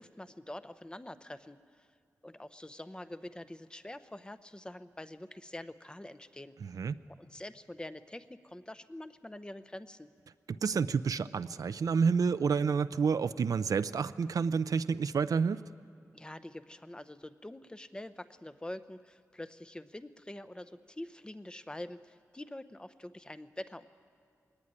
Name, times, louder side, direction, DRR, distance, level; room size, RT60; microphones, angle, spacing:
voice 1, 0.0-1.9 2.2-6.5 7.1-10.1 16.1-23.9, left 1 dB, 15° left, 12 dB, 0.7 m, -45 dB
voice 2, 10.6-15.6, right 5 dB, 80° right, 13 dB, 0.5 m, -29 dB
21.0 x 18.0 x 9.9 m, 2.3 s
wide cardioid pair, 110°, 6 cm